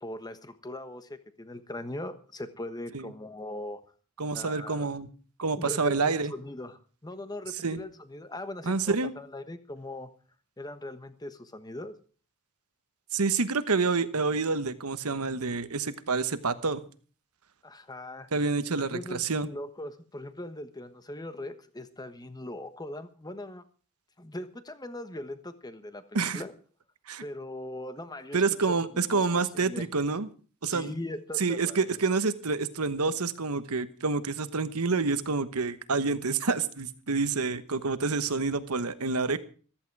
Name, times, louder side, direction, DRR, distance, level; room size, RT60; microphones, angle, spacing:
voice 1, 0.0-3.8 4.3-4.9 5.6-10.1 10.6-12.0 17.6-18.3 18.7-23.6 24.2-26.5 27.2-29.9 30.7-31.8, left 1 dB, 20° left, 10 dB, 1.2 m, -40 dB
voice 2, 4.2-5.1 5.4-6.3 7.6-7.8 8.6-9.1 13.1-16.8 18.3-19.5 26.1-26.4 27.1-27.2 28.3-30.3 30.6-30.9 31.4-39.4, right 4 dB, 85° right, 12 dB, 1.2 m, -28 dB
15.0 x 14.0 x 4.8 m, 0.40 s
head